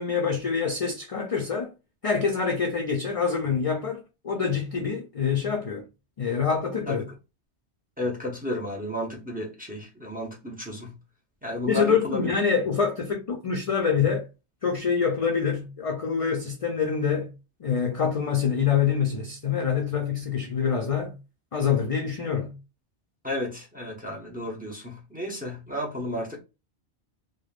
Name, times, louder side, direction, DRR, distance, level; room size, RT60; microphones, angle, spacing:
voice 1, 0.0-1.7 2.0-5.9 6.2-7.0 11.7-14.2 14.6-17.3 17.6-21.1 21.5-22.5, left 6 dB, 55° left, 0.4 m, -26 dB
voice 2, 8.0-10.9 11.4-12.3 23.2-26.4, left 1 dB, 10° right, 0.6 m, -32 dB
3.2 x 2.1 x 2.4 m
omnidirectional pair, 1.2 m